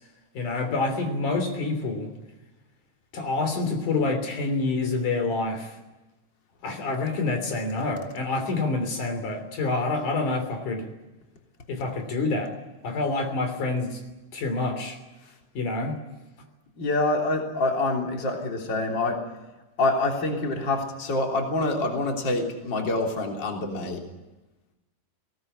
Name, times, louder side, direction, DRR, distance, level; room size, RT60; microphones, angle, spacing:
voice 1, 0.3-2.1 3.1-5.7 6.6-10.9 11.7-12.5 12.8-14.0 14.3-15.0 15.5-16.0, left 3 dB, 75° left, 5 dB, 4.7 m, -27 dB
voice 2, 16.8-19.2 19.8-24.0, left 2 dB, 35° left, 1 dB, 3.9 m, -26 dB
21.5 x 18.5 x 9.9 m, 1.1 s
omnidirectional pair, 3.6 m